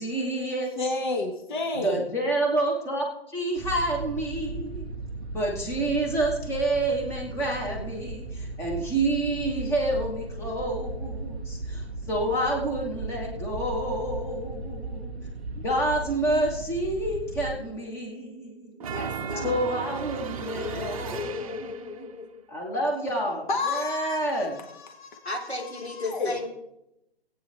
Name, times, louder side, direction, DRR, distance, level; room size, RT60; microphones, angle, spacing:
voice 1, 0.0-0.7 1.8-4.9 5.3-15.1 15.5-18.9 19.4-22.1 22.5-24.6, right 1 dB, 10° left, -1 dB, 1.6 m, -28 dB
voice 2, 0.8-2.0 23.5-26.3, left 3 dB, 50° left, 4 dB, 1.6 m, -31 dB
sound 1, 3.6-17.5, right 2 dB, 10° right, 0.4 m, -36 dB
sound 2, 18.8-22.0, right 7 dB, 35° right, 0.8 m, -35 dB
voice 3, 18.9-19.5 20.4-22.4 25.2-26.5, left 3 dB, 90° left, 1 dB, 3.0 m, -35 dB
17.5 x 9.2 x 3.5 m, 0.84 s
figure-of-eight pair, 140°, 31 cm